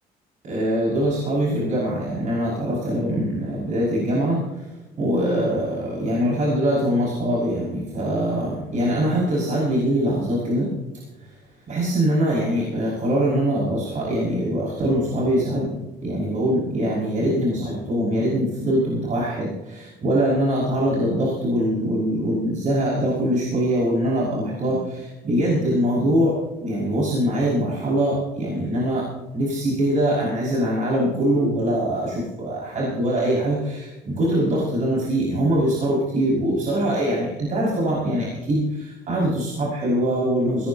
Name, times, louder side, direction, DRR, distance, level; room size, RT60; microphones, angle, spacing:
voice 1, 0.4-10.7 11.2-11.3 11.7-26.3 26.6-29.0 29.3-40.7, equal, 45° right, -5 dB, 5.7 m, -23 dB
18.0 x 17.0 x 2.8 m, 1.1 s
cardioid pair, 110°, 17 cm